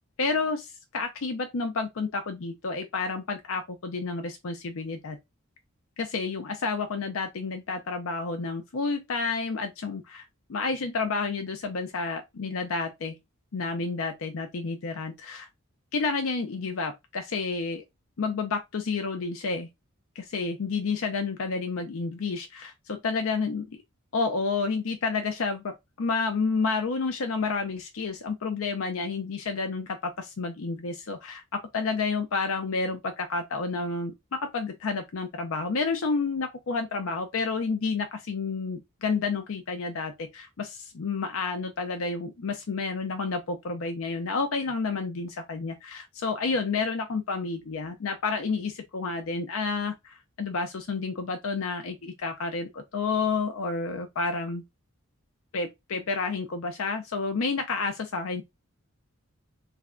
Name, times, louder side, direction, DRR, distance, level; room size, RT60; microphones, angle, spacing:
voice 1, 0.2-5.2 6.0-13.1 13.5-15.5 15.9-17.8 18.2-19.7 20.2-23.7 24.1-54.6 55.5-58.4, left 4 dB, 75° left, 0.5 m, -30 dB
3.3 x 2.1 x 3.7 m
head